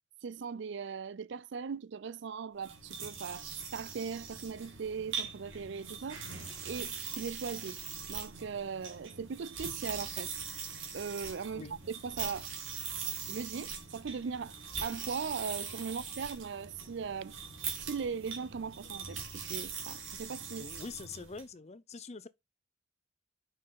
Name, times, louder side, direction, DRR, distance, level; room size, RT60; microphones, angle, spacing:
voice 1, 0.2-6.2 6.6-7.8 8.1-10.3 10.9-12.5 13.3-14.6 14.8-17.3 17.8-20.7, right 6 dB, 65° right, 0.4 m, -39 dB
sound 1, 2.6-21.5, right 6 dB, 85° right, 2.6 m, -42 dB
voice 2, 15.9-16.3 18.8-18.9 20.6-22.3, left 4 dB, 35° left, 0.6 m, -45 dB
5.7 x 5.4 x 3.8 m
head